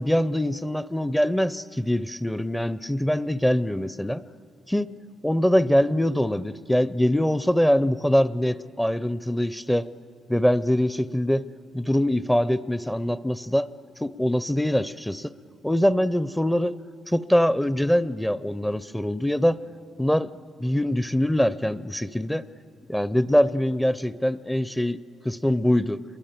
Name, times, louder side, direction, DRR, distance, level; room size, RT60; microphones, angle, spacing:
voice 1, 0.0-4.2 4.7-4.9 5.2-9.9 10.3-11.4 11.7-13.7 14.0-15.3 15.6-16.8 17.1-19.6 20.0-20.3 20.6-22.4 22.9-25.0 25.2-26.0, equal, 5° left, 17 dB, 0.5 m, -23 dB
27.5 x 22.0 x 8.9 m, 2.7 s
cardioid pair, 90°, 0 cm